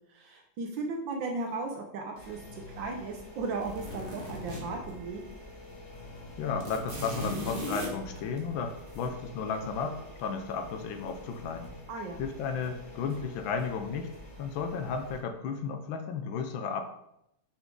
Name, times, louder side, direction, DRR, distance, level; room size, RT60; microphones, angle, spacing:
voice 1, 0.1-5.2 11.9-12.2, right 3 dB, 70° right, 2 dB, 1.3 m, -36 dB
sound 1, 2.2-15.2, left 2 dB, 20° left, 1.3 m, -47 dB
sound 2, 3.6-5.3 5.6-5.7 6.0-9.1 10.5-11.0 11.4-11.7, equal, 30° right, 1.1 m, -38 dB
voice 2, 6.4-11.7 12.2-14.1 14.4-16.8, left 5 dB, 75° left, 6 dB, 1.3 m, -34 dB
6.4 x 4.9 x 3.7 m, 0.80 s
omnidirectional pair, 2.3 m